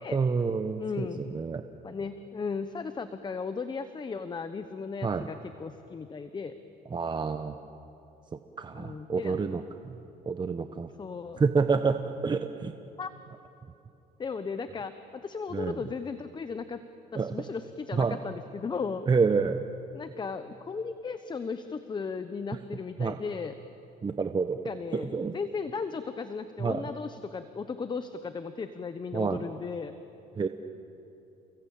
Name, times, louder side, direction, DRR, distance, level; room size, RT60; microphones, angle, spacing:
voice 1, 0.1-1.6 5.0-5.3 6.9-7.6 8.6-10.0 10.3-10.9 11.4-12.7 15.5-15.8 17.1-17.4 17.9-18.2 19.1-19.6 23.0-23.2 24.0-24.6 24.9-25.3 26.6-26.8 29.1-29.4 30.4-30.5, right 5 dB, 25° right, 8 dB, 1.0 m, -28 dB
voice 2, 0.8-1.2 1.8-6.6 8.7-9.6 11.0-11.4 13.0-13.1 14.2-16.8 17.1-19.0 19.9-23.5 24.6-29.9, left 5 dB, 25° left, 10 dB, 1.0 m, -36 dB
29.5 x 22.0 x 8.6 m, 2.8 s
cardioid pair, 110°, 17 cm